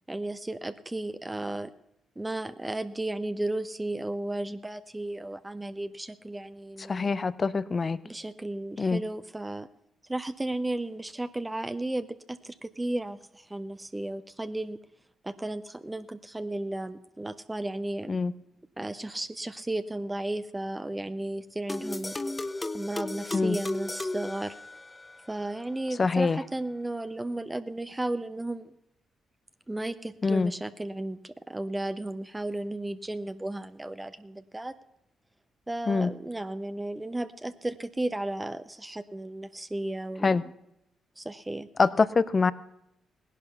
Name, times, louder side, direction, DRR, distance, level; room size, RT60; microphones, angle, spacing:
voice 1, 0.1-1.7 2.2-7.1 8.0-9.7 10.1-14.8 15.2-18.2 18.8-22.1 22.7-24.5 25.3-28.7 29.7-34.7 35.7-40.4 41.2-41.7, right 1 dB, 20° right, 11 dB, 0.8 m, -34 dB
voice 2, 6.9-8.0 8.8-9.0 18.1-18.3 23.3-23.6 26.0-26.4 30.2-30.5 35.9-36.1 40.2-40.4 41.8-42.5, left 4 dB, 40° left, 17 dB, 0.6 m, -24 dB
sound 1, 21.7-25.2, left 2 dB, 25° left, 0.9 m, -34 dB
17.0 x 11.0 x 5.8 m, 0.80 s
hypercardioid pair, 45°, 0 cm